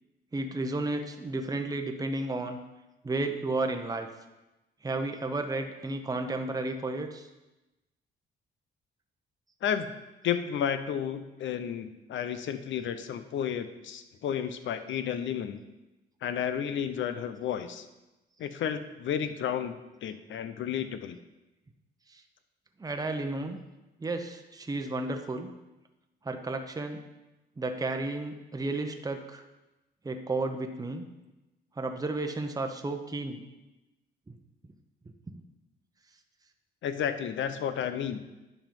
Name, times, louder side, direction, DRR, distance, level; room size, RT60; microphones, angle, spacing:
voice 1, 0.3-2.6 3.0-4.1 4.8-7.3 22.1-22.2 22.8-23.6 24.0-25.5 26.2-27.0 27.6-29.4 30.0-31.1 31.8-33.4 34.3-34.4, right 2 dB, 20° right, 5 dB, 0.9 m, -32 dB
voice 2, 10.2-15.6 16.2-17.9 18.4-19.8 20.0-21.2 36.8-38.2, left 8 dB, 70° left, 10 dB, 0.8 m, -32 dB
10.5 x 5.5 x 5.4 m, 1.0 s
cardioid pair, 90°, 20 cm